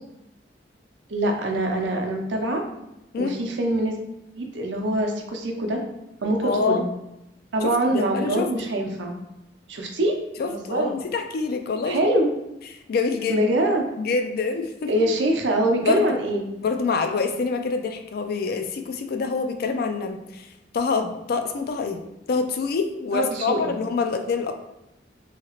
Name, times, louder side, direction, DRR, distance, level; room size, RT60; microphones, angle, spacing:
voice 1, 1.1-2.6 3.2-4.0 4.3-5.8 6.2-6.9 7.5-9.1 9.7-10.2 10.5-11.0 11.9-12.3 13.3-13.9 14.9-16.5 23.1-23.7, right 1 dB, 80° right, 2 dB, 0.6 m, -24 dB
voice 2, 6.4-6.8 7.6-8.7 10.4-12.1 12.7-13.4 14.0-15.1 15.8-16.2 16.6-20.5 20.7-22.0 22.3-24.6, left 4 dB, 55° left, 6 dB, 0.3 m, -26 dB
2.9 x 2.8 x 2.9 m, 0.89 s
head